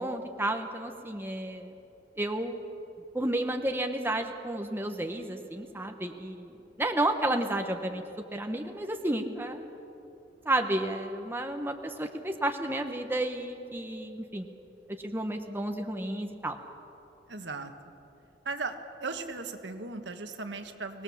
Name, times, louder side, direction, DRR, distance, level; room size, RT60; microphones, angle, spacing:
voice 1, 0.0-1.7 2.2-2.6 3.1-8.0 8.3-9.6 10.4-14.5 15.0-16.6, right 1 dB, 10° right, 4 dB, 1.1 m, -31 dB
voice 2, 17.3-17.7 18.4-18.7 19.0-21.0, right 3 dB, 75° right, 7 dB, 1.5 m, -37 dB
24.5 x 19.0 x 7.3 m, 2.9 s
head